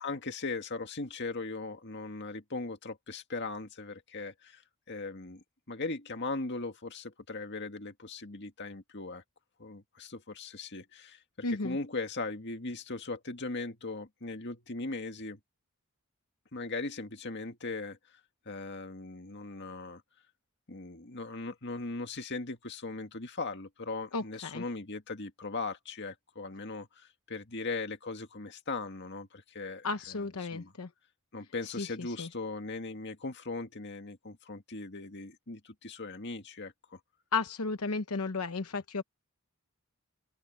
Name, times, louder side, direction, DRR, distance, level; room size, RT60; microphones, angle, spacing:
voice 1, 0.0-4.6 4.9-9.2 9.6-15.4 16.5-18.2 18.5-20.0 20.7-29.9 30.5-30.7 31.3-37.0, left 3 dB, 50° left, 2.0 m, -39 dB
voice 2, 11.4-11.8 24.1-24.6 29.8-30.9 31.6-32.3 37.3-39.0, left 4 dB, 80° left, 1.0 m, -34 dB
open air
head